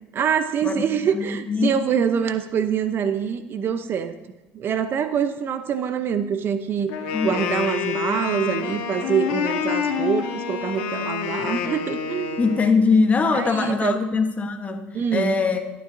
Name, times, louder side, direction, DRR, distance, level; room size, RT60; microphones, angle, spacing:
voice 1, 0.1-4.1 4.5-6.9 7.2-12.4 13.3-14.0 14.9-15.3, right 7 dB, 45° right, 10 dB, 0.7 m, -25 dB
voice 2, 1.1-1.8 7.1-7.4 12.4-15.7, left 4 dB, 25° left, 6 dB, 1.2 m, -22 dB
Wind instrument woodwind instrument, 6.9-12.8, left 7 dB, 85° left, 1.5 m, -27 dB
14.0 x 9.4 x 2.7 m, 1.1 s
supercardioid pair, 100°, 5 cm